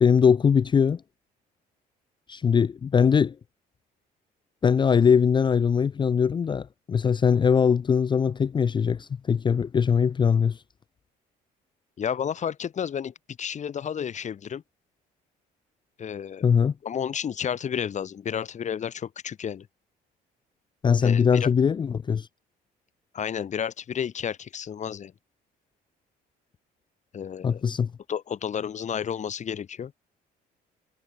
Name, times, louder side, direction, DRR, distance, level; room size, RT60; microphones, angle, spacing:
voice 1, 0.0-1.0 2.3-3.4 4.6-10.6 16.4-16.7 20.8-22.3 27.4-27.9, left 6 dB, 25° left, 0.5 m, -21 dB
voice 2, 12.0-14.6 16.0-16.4 16.8-19.7 21.0-21.5 23.1-25.1 27.1-27.6 28.1-29.9, left 8 dB, 45° left, 4.1 m, -31 dB
cardioid pair, 110°, 17 cm